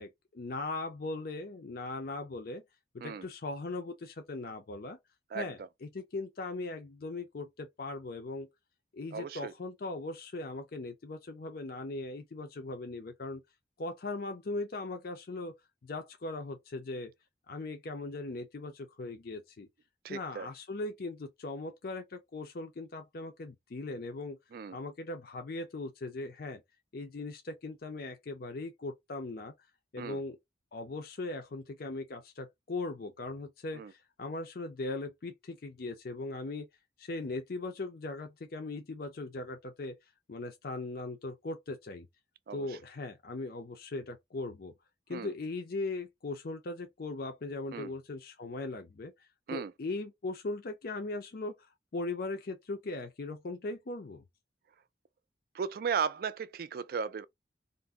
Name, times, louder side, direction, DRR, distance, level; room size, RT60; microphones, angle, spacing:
voice 1, 0.0-2.6 2.9-5.0 5.3-8.5 8.9-13.4 13.8-15.6 15.8-17.1 17.5-19.7 20.1-24.4 24.7-26.6 26.9-29.5 29.9-30.4 30.7-36.7 37.0-40.0 40.3-42.1 42.5-44.7 45.1-49.1 49.5-54.2, left 2 dB, 55° left, 0.5 m, -39 dB
voice 2, 9.1-9.5 20.0-20.5 24.5-24.8 30.0-30.2 33.8-33.9 42.5-42.7 45.1-45.3 47.7-47.9 49.5-49.7 55.5-57.3, right 6 dB, 55° right, 0.3 m, -35 dB
2.5 x 2.1 x 3.4 m
head